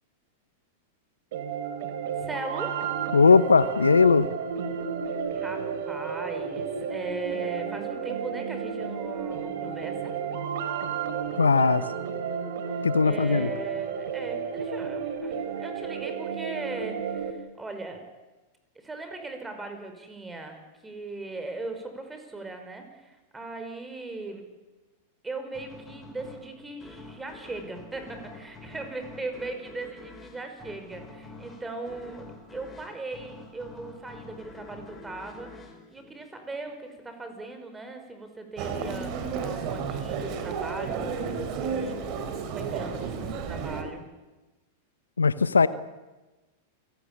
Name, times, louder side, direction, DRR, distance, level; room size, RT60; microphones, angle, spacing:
sound 1, 1.3-17.3, right 7 dB, 60° right, 3.1 m, -32 dB
voice 1, 2.2-2.8 5.1-10.2 13.0-18.1 18.8-24.5 25.2-32.3 32.5-35.5 35.9-42.0 42.5-44.1, right 3 dB, 10° right, 7 dB, 5.5 m, -39 dB
voice 2, 3.1-4.3 11.4-11.8 12.8-13.5 45.2-45.7, left 5 dB, 85° left, 16 dB, 0.9 m, -19 dB
sound 2, 25.5-36.8, left 3 dB, 15° left, 6.6 m, -47 dB
Human voice, 38.6-43.8, right 5 dB, 45° right, 4.0 m, -32 dB
28.5 x 18.5 x 8.8 m, 1.1 s
figure-of-eight pair, 95°, 0 cm